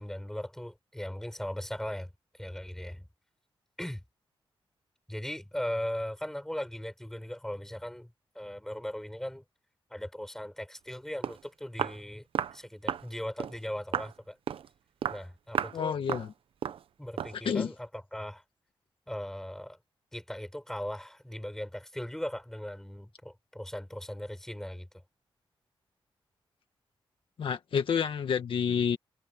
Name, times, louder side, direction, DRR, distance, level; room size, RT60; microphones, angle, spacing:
voice 1, 0.0-3.1 3.8-4.0 5.1-9.4 9.9-12.3 12.5-14.4 15.1-16.0 17.0-18.4 19.1-19.8 20.1-24.9, left 1 dB, 5° left, 6.1 m, -38 dB
Walk footsteps, 10.9-11.0 11.2-11.4 11.8-12.0 12.3-12.6 12.9-13.1 13.4-13.6 13.9-14.1 14.5-14.7 15.0-15.2 15.5-15.8 16.1-16.3 16.6-16.8 17.2-17.4, right 8 dB, 80° right, 0.8 m, -33 dB
voice 2, 15.7-16.3 17.4-17.7 27.4-29.0, left 7 dB, 70° left, 1.6 m, -29 dB
wide cardioid pair, 155°, 9 cm